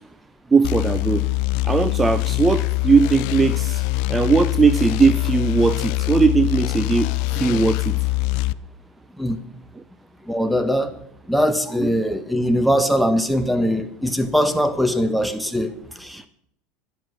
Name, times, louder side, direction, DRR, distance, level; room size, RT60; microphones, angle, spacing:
voice 1, 0.5-1.2 1.6-3.8 4.1-7.9 11.8-11.9, right 4 dB, 15° right, 13 dB, 0.6 m, -19 dB
sound 1, 0.6-8.5, left 21 dB, 65° left, 0.4 m, -23 dB
voice 2, 10.3-11.0 11.3-16.3, equal, ahead, 10 dB, 1.2 m, -21 dB
11.5 x 11.0 x 6.3 m, 0.68 s
supercardioid pair, 115°, 0 cm